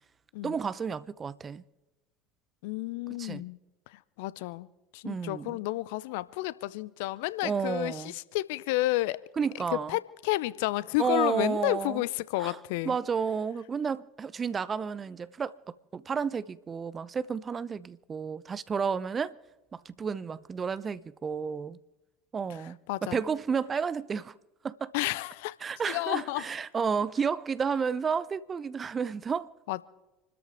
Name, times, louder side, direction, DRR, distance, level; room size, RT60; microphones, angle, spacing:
voice 1, 0.4-1.6 3.1-3.4 5.0-5.6 7.4-8.1 9.4-10.0 11.0-12.0 12.4-12.6 12.8-15.5 15.9-19.3 19.7-21.8 22.3-24.3 24.6-24.9 25.6-29.5, right 6 dB, 30° right, 0.7 m, -31 dB
voice 2, 2.6-3.6 3.9-4.7 4.9-9.2 9.7-12.9 22.5-23.2 24.9-25.6 25.8-26.4 29.7-29.8, left 19 dB, 65° left, 0.5 m, -31 dB
27.5 x 13.0 x 3.6 m
figure-of-eight pair, 70°, 0 cm